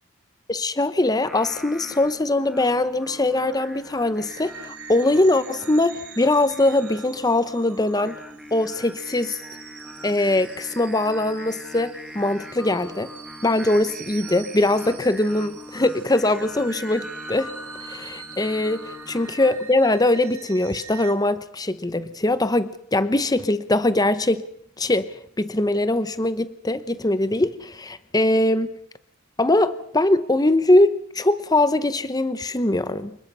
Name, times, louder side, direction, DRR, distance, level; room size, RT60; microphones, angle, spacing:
voice 1, 0.5-8.2 8.5-9.4 10.0-13.1 13.4-17.5 17.8-24.4 24.8-28.7 29.4-33.2, left 2 dB, 15° left, 13 dB, 0.8 m, -22 dB
Singing, 1.3-19.5, left 1 dB, ahead, 2.2 m, -42 dB
sound 1, 4.3-21.1, right 6 dB, 75° right, 3.6 m, -43 dB
28.5 x 20.5 x 5.5 m, 0.69 s
head